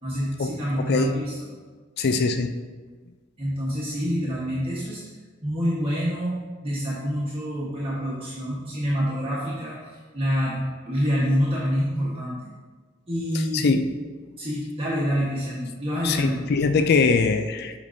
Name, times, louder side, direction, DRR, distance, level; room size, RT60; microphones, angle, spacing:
voice 1, 0.0-1.4 3.4-5.0 5.4-12.4 13.1-13.6 14.4-16.5, equal, 30° right, -8 dB, 1.3 m, -27 dB
voice 2, 0.8-1.1 2.0-2.5 13.5-13.8 16.0-17.7, left 4 dB, 55° left, 8 dB, 0.4 m, -22 dB
8.3 x 5.1 x 2.7 m, 1.4 s
head